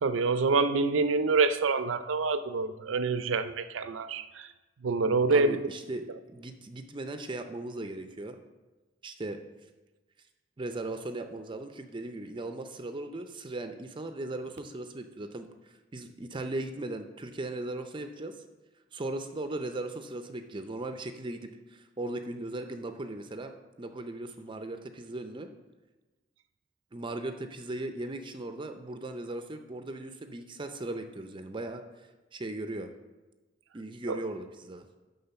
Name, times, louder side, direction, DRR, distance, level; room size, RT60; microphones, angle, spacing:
voice 1, 0.0-4.5 4.8-5.6 6.1-6.2 34.1-34.3, right 4 dB, 85° right, 12 dB, 0.5 m, -26 dB
voice 2, 5.3-8.4 9.0-9.4 10.6-18.4 18.9-23.5 23.8-25.5 26.9-31.8 32.3-32.9 33.7-34.9, right 2 dB, 25° right, 7 dB, 0.5 m, -38 dB
11.0 x 3.8 x 6.8 m, 1.2 s
head